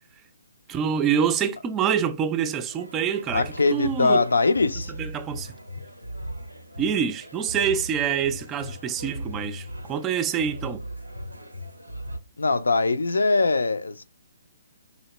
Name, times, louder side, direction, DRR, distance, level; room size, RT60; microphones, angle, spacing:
voice 1, 0.7-4.3 4.9-5.5 6.8-10.8, right 8 dB, 20° right, 0.4 m, -26 dB
sound 1, 2.7-12.2, equal, 85° right, 0.5 m, -38 dB
voice 2, 3.3-4.9 12.4-14.0, left 3 dB, 70° left, 0.4 m, -22 dB
4.2 x 2.8 x 2.9 m
figure-of-eight pair, 130°, 0 cm